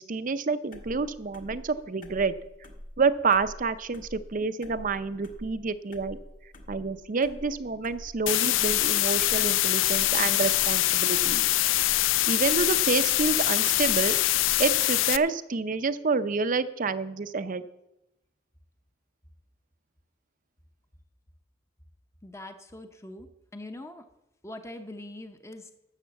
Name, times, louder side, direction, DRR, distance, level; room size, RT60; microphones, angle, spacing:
voice 1, 0.0-2.3 3.0-6.2 6.7-11.4 12.3-14.1 14.6-17.6, right 4 dB, 45° right, 12 dB, 0.6 m, -28 dB
sound 1, 0.7-14.9, equal, 45° left, 1.6 m, -46 dB
sound 2, 8.3-15.2, left 16 dB, 85° left, 0.4 m, -24 dB
voice 2, 22.2-24.1 24.4-25.7, left 1 dB, 15° left, 7 dB, 0.8 m, -43 dB
11.5 x 7.2 x 7.1 m, 0.92 s
head